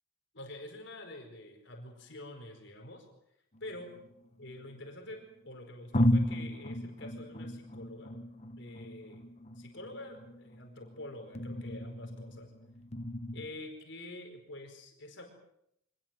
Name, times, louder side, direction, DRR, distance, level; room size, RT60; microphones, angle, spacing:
voice 1, 0.3-3.1 3.6-3.9 4.4-8.1 8.6-9.2 9.5-12.5 13.3-15.3, left 1 dB, 65° left, 3 dB, 4.9 m, -47 dB
sound 1, 3.5-4.9 5.4-5.5 5.9-13.5, left 1 dB, 35° left, 1.2 m, -35 dB
25.5 x 20.5 x 7.7 m, 0.76 s
head